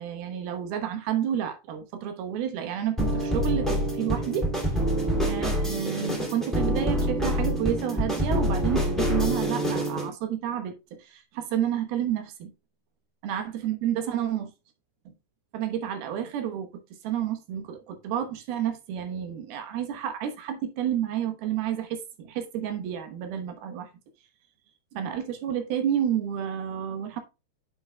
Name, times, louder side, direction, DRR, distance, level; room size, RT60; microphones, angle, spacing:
voice 1, 0.0-4.5 5.3-10.7 11.0-12.5 13.2-14.5 15.1-15.2 15.5-16.7 17.0-23.9 24.9-27.2, right 9 dB, 75° right, 3.0 m, -30 dB
sound 1, 3.0-10.1, equal, ahead, 1.5 m, -26 dB
9.3 x 5.9 x 2.2 m
omnidirectional pair, 4.5 m